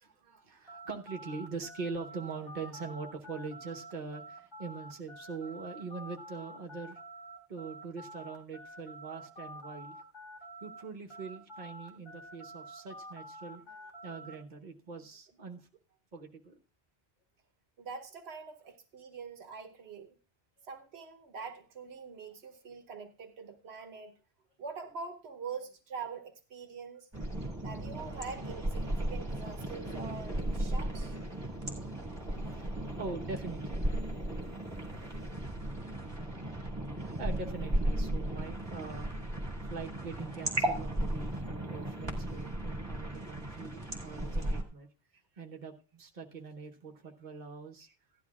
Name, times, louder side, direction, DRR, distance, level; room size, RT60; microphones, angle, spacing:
voice 1, 0.0-7.0 7.5-10.0 10.6-15.7 16.1-16.6 29.0-29.1 31.5-31.7 32.6-33.9 35.8-36.0 36.5-39.3 39.7-44.9 45.4-47.9, right 4 dB, 45° right, 1 dB, 1.2 m, -43 dB
sound 1, 0.7-10.8 11.1-14.3, right 1 dB, 25° left, 1.9 m, -48 dB
voice 2, 17.8-20.2 20.6-24.1 24.6-27.1 27.6-31.2, right 5 dB, 80° right, 5 dB, 1.2 m, -44 dB
sound 2, 27.1-44.6, right 1 dB, 25° right, 2.1 m, -35 dB
16.5 x 11.5 x 2.4 m, 0.33 s
omnidirectional pair, 1.1 m